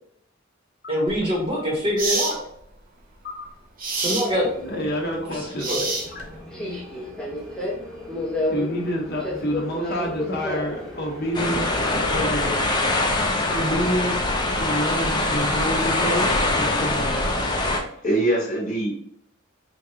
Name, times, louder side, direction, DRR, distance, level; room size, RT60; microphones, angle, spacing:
voice 1, 0.9-2.4 3.9-4.5 5.3-5.9, equal, 30° right, -4 dB, 1.3 m, -24 dB
sound 1, 1.1-1.2 2.0-2.4 3.8-4.3 5.6-6.3, right 3 dB, 45° right, 0.8 m, -26 dB
Subway metro underground, 4.3-12.2, left 1 dB, 5° left, 1.0 m, -32 dB
voice 2, 4.6-5.8 6.8-6.9 8.5-12.5 13.1-17.2, equal, 55° left, -1 dB, 1.2 m, -28 dB
sound 2, 11.3-17.8, left 2 dB, 20° left, 0.7 m, -23 dB
voice 3, 17.9-18.9, right 1 dB, 40° left, -5 dB, 1.6 m, -24 dB
5.1 x 2.5 x 2.9 m, 0.69 s
head